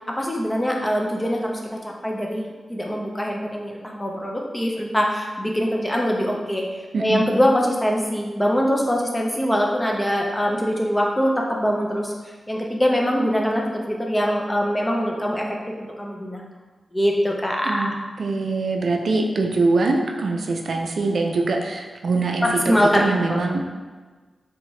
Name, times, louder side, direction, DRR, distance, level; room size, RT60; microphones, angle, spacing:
voice 1, 0.2-6.7 7.0-12.1 12.5-16.4 16.9-17.9 22.4-23.4, equal, 15° left, -1 dB, 0.6 m, -23 dB
voice 2, 6.9-7.3 17.6-17.9 18.2-23.8, right 3 dB, 75° right, 2 dB, 0.4 m, -23 dB
3.4 x 2.8 x 3.1 m, 1.4 s
cardioid pair, 75°, 0 cm